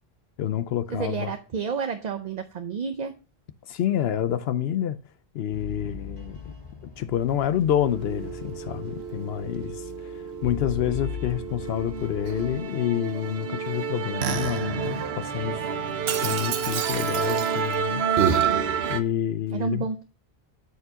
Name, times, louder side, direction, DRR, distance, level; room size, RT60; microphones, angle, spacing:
voice 1, 0.4-1.3 3.7-5.0 5.3-6.5 7.0-15.6 16.2-18.0 18.9-19.8, left 11 dB, 75° left, 0.8 m, -28 dB
voice 2, 0.9-3.1 5.9-6.0 19.5-20.0, right 5 dB, 50° right, 0.7 m, -30 dB
sound 1, 5.5-12.6, left 6 dB, 40° left, 2.0 m, -40 dB
Musical instrument, 7.8-19.0, right 7 dB, 75° right, 0.9 m, -28 dB
13.0 x 4.5 x 2.8 m
omnidirectional pair, 1.1 m